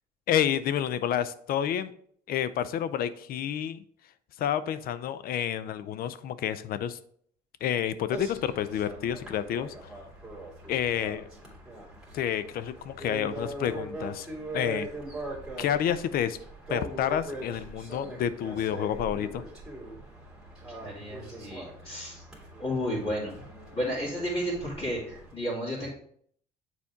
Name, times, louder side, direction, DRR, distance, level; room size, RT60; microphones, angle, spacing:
voice 1, 0.3-1.9 2.3-3.8 4.4-7.0 7.6-9.9 10.7-11.3 12.1-14.3 14.5-14.9 15.6-16.4 16.7-19.4, left 10 dB, 60° left, 14 dB, 0.5 m, -29 dB
sound 1, 8.1-25.3, right 2 dB, 5° right, 2.4 m, -41 dB
voice 2, 20.7-22.2 22.6-23.3 23.7-25.9, equal, 30° left, -9 dB, 2.7 m, -32 dB
7.0 x 4.2 x 3.5 m, 0.63 s
cardioid pair, 110°, 17 cm